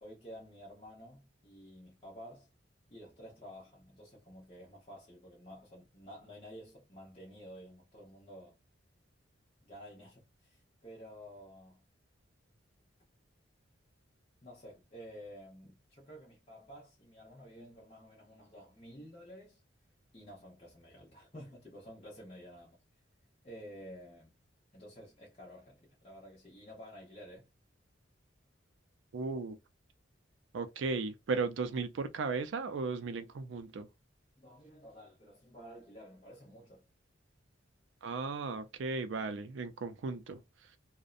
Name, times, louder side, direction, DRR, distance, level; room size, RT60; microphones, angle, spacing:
voice 1, 0.0-2.5 2.9-8.6 9.6-11.8 14.4-19.6 20.1-22.8 23.4-24.3 24.7-27.5 34.4-36.9, equal, 30° left, 0.8 m, -51 dB
voice 2, 29.1-29.6 30.5-33.9 38.0-40.4, right 4 dB, 75° right, 0.4 m, -36 dB
2.6 x 2.1 x 2.3 m
head